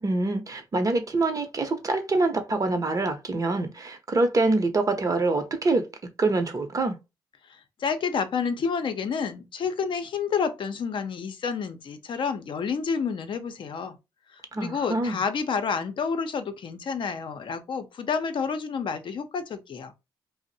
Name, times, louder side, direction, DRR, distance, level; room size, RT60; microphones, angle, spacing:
voice 1, 0.0-5.8 6.2-7.0 14.5-15.2, right 2 dB, 40° right, 0.8 m, -25 dB
voice 2, 7.8-14.0 14.6-19.9, left 6 dB, 60° left, 0.6 m, -29 dB
2.6 x 2.0 x 3.9 m
supercardioid pair, 55°, 9 cm